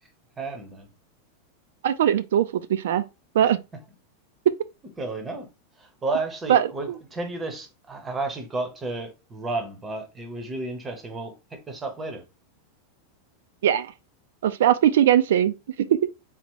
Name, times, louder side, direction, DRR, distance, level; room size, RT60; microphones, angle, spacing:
voice 1, 0.4-0.9 5.0-5.5 5.8-12.2, right 2 dB, 10° right, 0.7 m, -32 dB
voice 2, 1.8-3.0 3.3-3.6 6.5-6.7 13.6-13.9 14.4-16.0, right 10 dB, 75° right, 0.3 m, -20 dB
4.2 x 2.0 x 4.4 m
supercardioid pair, 180°, 0 cm